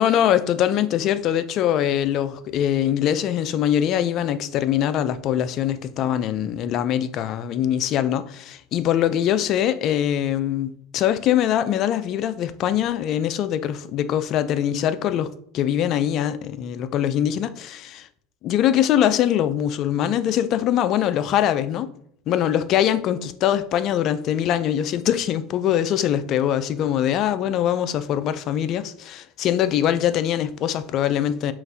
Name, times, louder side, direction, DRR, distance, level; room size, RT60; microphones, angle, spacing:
voice 1, 0.0-18.1 18.4-21.9 22.3-31.5, left 10 dB, 50° left, 0.4 m, -22 dB
5.7 x 2.5 x 2.7 m
supercardioid pair, 115°, 0 cm